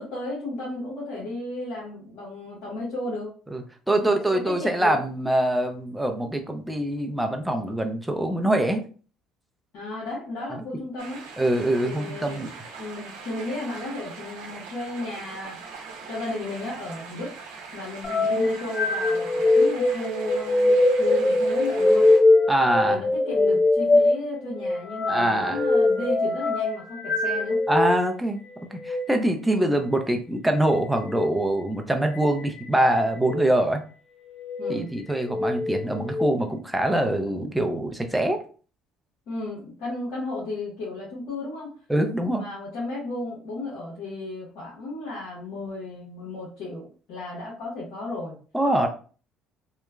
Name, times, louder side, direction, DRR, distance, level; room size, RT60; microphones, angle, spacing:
voice 1, 0.0-3.3 3.9-5.0 9.7-11.3 11.8-12.5 12.8-17.3 17.7-22.0 22.9-27.6 29.4-29.8 34.6-34.9 39.3-41.8 42.3-48.4, left 2 dB, 70° left, -7 dB, 1.2 m, -34 dB
voice 2, 3.5-8.8 11.4-12.5 22.5-23.0 25.1-25.6 27.7-28.4 28.7-33.8 34.7-38.4 41.9-42.4 48.5-48.9, right 1 dB, 5° right, 4 dB, 0.5 m, -24 dB
sound 1, 11.0-22.2, right 5 dB, 90° right, 0.6 m, -41 dB
sound 2, 18.0-28.0 28.7-29.0 31.0-31.3 32.1-32.7 33.2-33.5 34.3-34.8 35.3-36.3, left 2 dB, 40° left, 0.5 m, -22 dB
2.9 x 2.2 x 2.3 m, 0.39 s
supercardioid pair, 80°, 0 cm